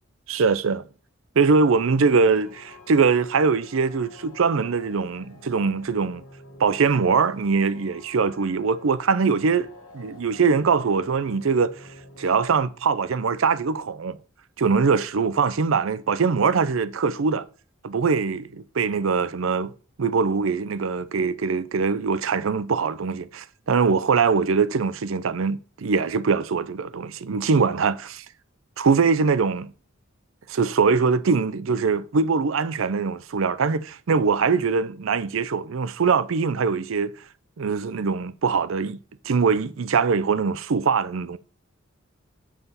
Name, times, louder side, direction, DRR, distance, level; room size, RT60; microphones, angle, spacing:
voice 1, 0.3-0.8 1.4-6.2 6.6-9.7 9.9-11.7 12.2-14.2 14.6-17.5 17.8-19.7 20.0-28.2 28.8-29.7 30.5-37.1 37.6-39.0 39.2-41.4, right 5 dB, 70° right, 0.5 m, -22 dB
sound 1, 1.9-12.6, left 2 dB, 85° left, 1.6 m, -48 dB
7.4 x 5.7 x 4.1 m
head